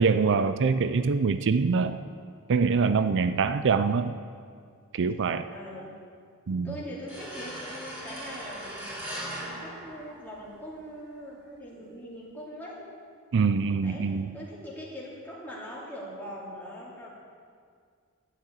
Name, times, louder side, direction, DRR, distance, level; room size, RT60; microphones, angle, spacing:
voice 1, 0.0-2.0 2.5-4.1 4.9-5.5 6.5-6.8 13.3-14.3, right 5 dB, 55° right, 11 dB, 0.5 m, -24 dB
voice 2, 5.5-6.0 6.6-12.8 13.8-17.1, equal, 10° left, -6 dB, 2.9 m, -42 dB
sound 1, 7.1-10.7, right 1 dB, 10° right, 4.4 m, -39 dB
11.5 x 9.2 x 8.6 m, 2.1 s
head